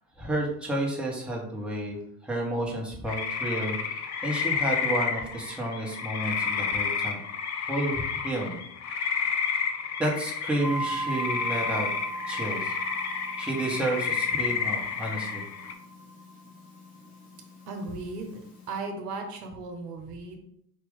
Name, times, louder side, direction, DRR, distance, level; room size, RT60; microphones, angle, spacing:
voice 1, 0.2-2.0 2.2-7.2 7.7-8.6 8.8-9.3 10.0-11.9 12.3-12.7 13.4-15.4, right 1 dB, ahead, -3 dB, 1.3 m, -31 dB
sound 1, 3.1-15.7, left 6 dB, 35° left, 0.6 m, -31 dB
sound 2, 10.6-18.8, right 2 dB, 60° left, 1.7 m, -39 dB
voice 2, 17.7-18.4 18.7-20.4, right 3 dB, 80° right, 3 dB, 1.0 m, -36 dB
5.0 x 2.8 x 3.7 m, 0.72 s
hypercardioid pair, 80°, 47 cm